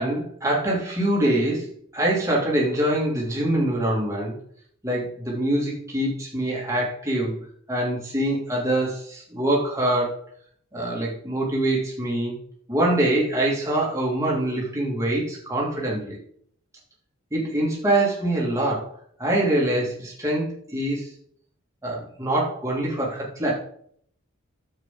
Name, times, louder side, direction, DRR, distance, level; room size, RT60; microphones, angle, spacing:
voice 1, 0.0-4.3 4.8-7.4 7.7-10.2 10.7-12.3 12.7-16.2 17.3-18.9 19.2-21.1 21.8-23.5, right 1 dB, 15° right, -4 dB, 2.8 m, -24 dB
9.7 x 7.7 x 4.0 m, 0.63 s
head